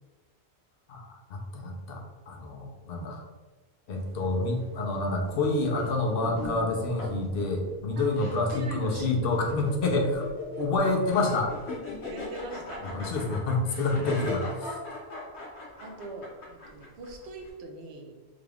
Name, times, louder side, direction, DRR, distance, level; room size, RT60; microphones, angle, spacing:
voice 1, 0.9-3.2 3.9-10.3 10.6-11.5 12.9-14.8, left 2 dB, 65° left, 1 dB, 0.8 m, -28 dB
sound 1, 3.9-17.5, left 2 dB, 85° left, 1.2 m, -40 dB
voice 2, 8.5-9.3 12.1-13.0 13.9-14.3 15.8-18.1, right 3 dB, 85° right, 3 dB, 0.9 m, -41 dB
3.7 x 2.3 x 3.4 m, 1.2 s
omnidirectional pair, 1.1 m